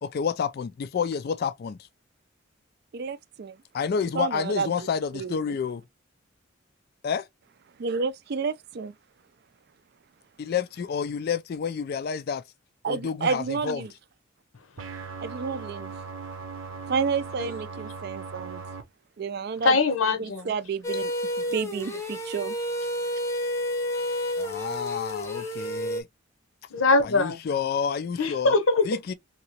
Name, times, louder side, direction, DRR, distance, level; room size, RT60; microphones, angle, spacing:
voice 1, 0.0-1.8 3.7-5.8 7.0-7.3 10.4-12.4 12.9-13.8 24.4-26.1 27.0-28.6 28.9-29.1, left 6 dB, 50° left, 0.3 m, -29 dB
voice 2, 2.9-3.6 4.1-4.9 5.1-5.6 7.8-8.9 12.8-13.9 15.2-15.9 16.9-18.6 19.2-19.8 20.2-21.1 21.4-22.6, right 5 dB, 50° right, 0.4 m, -30 dB
sound 1, 14.8-18.8, right 5 dB, 80° right, 0.7 m, -38 dB
voice 3, 19.6-20.5 26.7-27.4 28.2-28.9, left 3 dB, 85° left, 0.8 m, -22 dB
sound 2, 20.8-26.0, equal, 15° left, 0.6 m, -30 dB
2.9 x 2.9 x 2.8 m
head